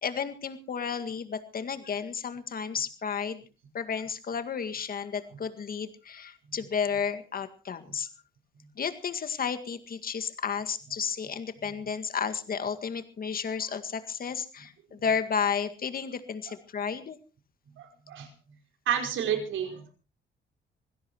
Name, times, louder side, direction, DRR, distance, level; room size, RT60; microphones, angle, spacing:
voice 1, 0.0-3.4 3.7-8.1 8.8-17.2, left 6 dB, 45° left, 9 dB, 2.0 m, -32 dB
voice 2, 17.8-18.3 18.9-19.9, right 8 dB, 80° right, 5 dB, 4.6 m, -30 dB
25.0 x 17.0 x 3.0 m, 0.32 s
cardioid pair, 90°, 20 cm